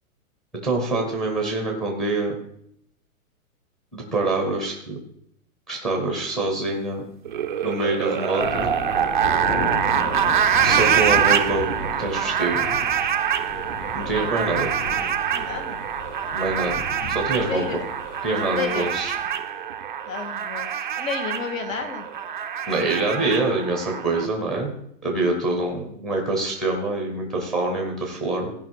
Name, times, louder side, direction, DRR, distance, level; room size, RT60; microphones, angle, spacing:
voice 1, 0.6-2.3 3.9-5.0 5.7-7.0 7.6-8.7 10.6-11.7 12.0-12.6 13.9-14.7 16.3-17.6 18.2-19.2 22.7-24.7 25.0-28.5, right 2 dB, ahead, 1 dB, 0.6 m, -25 dB
sound 1, 7.2-24.3, right 9 dB, 35° right, 0.4 m, -25 dB
sound 2, 8.4-19.3, left 3 dB, 35° left, 2.9 m, -34 dB
voice 2, 15.3-15.8 17.4-17.8 18.5-18.9 20.1-22.1, left 5 dB, 65° left, 7 dB, 1.9 m, -31 dB
16.0 x 5.4 x 4.6 m, 0.72 s
hypercardioid pair, 175°, 43 cm